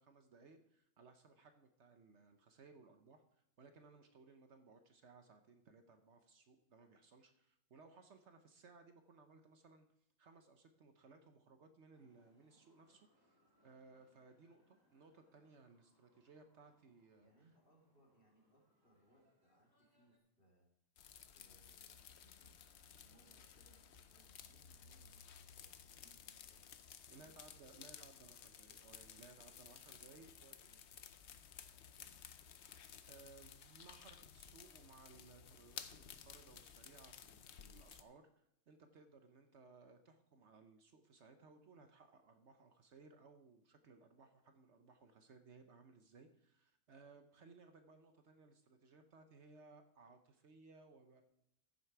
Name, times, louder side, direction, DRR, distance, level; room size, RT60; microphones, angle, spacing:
voice 1, 0.0-3.2 3.6-9.9 10.2-17.3 27.1-30.9 33.1-51.2, right 4 dB, 60° right, 7 dB, 1.1 m, -62 dB
sound 1, 11.9-20.2, equal, 15° right, 2.4 m, -78 dB
voice 2, 17.2-20.7 21.3-26.7 27.1-27.8 29.7-30.5 31.9-32.6, right 1 dB, 40° left, -1 dB, 2.6 m, -73 dB
sound 2, 21.0-38.0, left 8 dB, 60° left, 0.9 m, -56 dB
15.0 x 6.9 x 4.7 m, 0.77 s
omnidirectional pair, 1.4 m